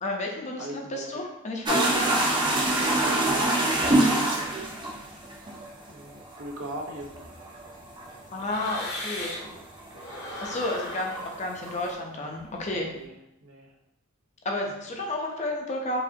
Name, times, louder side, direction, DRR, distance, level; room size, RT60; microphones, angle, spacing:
voice 1, 0.0-2.1 8.3-9.3 10.4-12.9 14.4-16.0, left 2 dB, 35° left, 0 dB, 0.6 m, -31 dB
voice 2, 0.6-1.3 2.0-4.7 5.9-7.3 9.9-10.6 12.7-13.1 13.4-13.7, right 1 dB, 65° right, 1 dB, 0.6 m, -40 dB
sound 1, 1.7-10.2 10.4-11.9, right 1 dB, 20° right, 0.6 m, -26 dB
Smoking breath in and out, 6.9-9.6 9.9-13.0, left 1 dB, 50° left, 1.0 m, -40 dB
4.8 x 2.6 x 2.7 m, 0.87 s
head